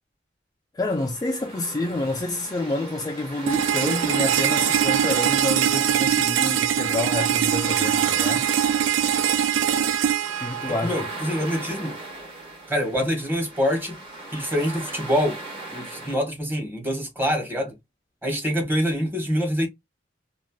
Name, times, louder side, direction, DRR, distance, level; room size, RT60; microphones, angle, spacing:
voice 1, 0.7-8.4 10.4-11.0, left 2 dB, 20° left, 0.3 m, -28 dB
sound 1, 0.9-16.2, right 2 dB, 30° right, 1.6 m, -38 dB
sound 2, 3.5-11.4, right 9 dB, 85° right, 0.4 m, -22 dB
voice 2, 10.8-12.0 12.7-14.0 14.3-15.4 15.7-17.7 18.2-19.7, equal, 10° right, 1.3 m, -25 dB
3.2 x 2.5 x 2.2 m
head